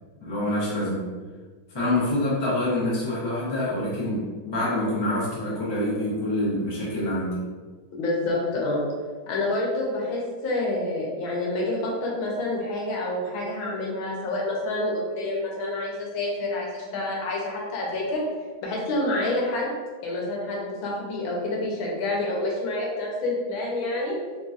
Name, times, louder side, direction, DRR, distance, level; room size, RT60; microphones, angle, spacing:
voice 1, 0.2-1.1 1.7-7.4, left 1 dB, 30° left, -8 dB, 0.5 m, -26 dB
voice 2, 7.9-8.8 9.3-18.2 18.6-19.7 20.0-24.1, left 2 dB, 80° left, -2 dB, 1.5 m, -28 dB
3.7 x 2.7 x 2.4 m, 1.4 s
omnidirectional pair, 2.2 m